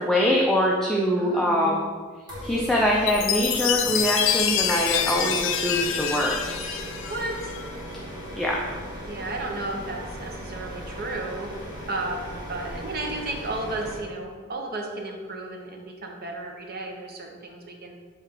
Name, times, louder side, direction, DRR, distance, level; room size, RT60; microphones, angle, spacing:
voice 1, 0.0-1.8 2.4-6.4 8.4-8.6, equal, ahead, -3 dB, 0.5 m, -23 dB
voice 2, 1.2-1.8 7.1-7.5 9.0-11.5 11.9-17.9, right 2 dB, 50° right, 2 dB, 0.9 m, -33 dB
sound 1, 2.3-14.0, equal, 20° right, 1.6 m, -38 dB
Chime, 3.1-7.7, left 9 dB, 70° left, 0.4 m, -26 dB
7.6 x 3.3 x 3.7 m, 1.5 s
head